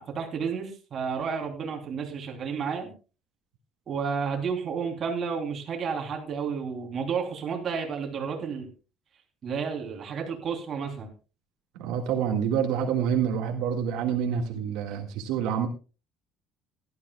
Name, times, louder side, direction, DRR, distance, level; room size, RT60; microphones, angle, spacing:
voice 1, 0.0-2.9 3.9-8.7 9.4-11.1, right 6 dB, 35° right, 1 dB, 3.3 m, -31 dB
voice 2, 11.8-15.7, right 8 dB, 80° right, 3 dB, 1.8 m, -27 dB
17.0 x 12.5 x 2.3 m, 0.32 s
cardioid pair, 150°, 0 cm